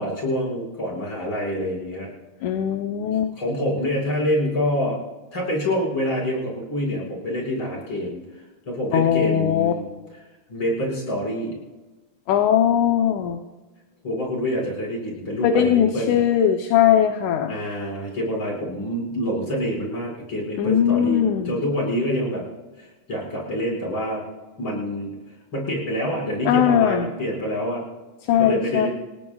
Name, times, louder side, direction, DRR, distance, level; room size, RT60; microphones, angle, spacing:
voice 1, 0.0-2.1 3.4-5.0 5.3-8.2 8.7-9.9 10.5-11.6 14.0-16.2 17.5-22.4 22.8-24.2 24.6-25.1 25.5-27.8 28.4-28.9, equal, 35° left, -3 dB, 6.3 m, -26 dB
voice 2, 2.4-3.3 8.9-9.7 12.3-13.4 15.4-17.6 20.6-21.6 26.5-27.1 28.3-28.9, left 9 dB, 70° left, 5 dB, 2.2 m, -20 dB
28.5 x 18.0 x 2.4 m, 1.2 s
omnidirectional pair, 3.7 m